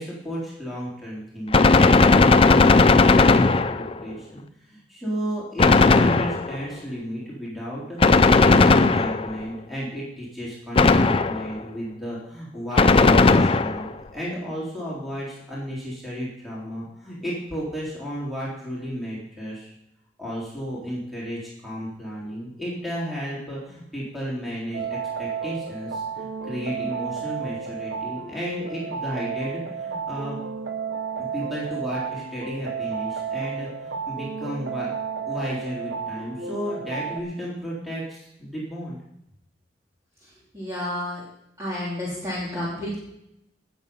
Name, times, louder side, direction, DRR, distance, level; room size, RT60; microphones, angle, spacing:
voice 1, 0.0-4.4 4.7-19.7 20.2-30.4 31.2-34.9 35.3-39.0, equal, ahead, -7 dB, 3.5 m, -33 dB
Gunshot gunfire, 1.5-4.0 5.6-6.6 8.0-9.4 10.7-11.6 12.8-13.9, left 3 dB, 30° left, 0.5 m, -16 dB
sound 1, 24.7-37.2, right 6 dB, 90° right, 1.2 m, -32 dB
voice 2, 40.5-41.2 41.6-43.0, left 1 dB, 20° right, -8 dB, 3.0 m, -30 dB
17.5 x 7.0 x 5.4 m, 0.81 s
head